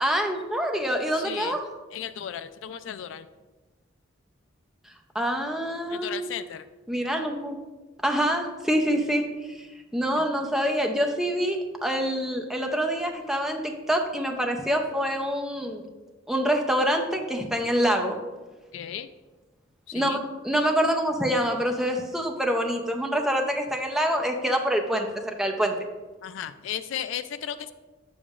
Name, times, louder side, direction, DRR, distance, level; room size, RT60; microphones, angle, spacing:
voice 1, 0.0-1.6 5.1-6.3 6.9-7.6 8.0-9.7 9.9-15.8 16.3-18.2 19.9-25.7, equal, ahead, 2 dB, 0.5 m, -26 dB
voice 2, 1.2-1.6 1.9-3.3 5.9-6.7 10.2-10.3 18.7-19.1 19.9-20.2 26.2-27.7, left 9 dB, 70° left, 13 dB, 0.3 m, -35 dB
8.3 x 7.1 x 2.4 m, 1.2 s
head